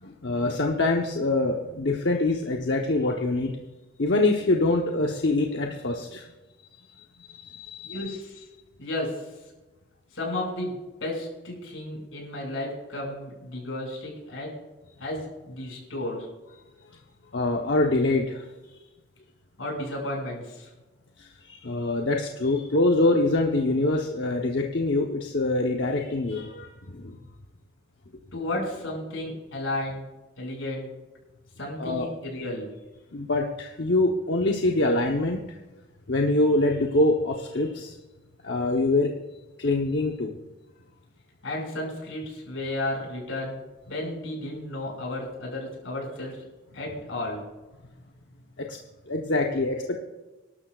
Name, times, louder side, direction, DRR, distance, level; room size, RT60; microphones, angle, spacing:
voice 1, 0.0-3.6 4.0-6.3 7.0-8.2 17.3-18.8 21.2-27.2 31.8-32.1 33.1-35.4 36.1-38.0 38.4-39.1 39.6-40.3 48.6-48.8 49.1-50.0, left 2 dB, 60° left, 1 dB, 0.9 m, -25 dB
voice 2, 7.8-8.4 8.8-9.3 10.1-14.5 15.0-16.3 19.6-20.7 28.3-30.1 30.4-30.9 31.6-32.7 41.4-43.6 43.9-46.4 46.7-47.4, left 1 dB, 90° left, -2 dB, 5.8 m, -33 dB
26.0 x 12.0 x 2.4 m, 1.1 s
head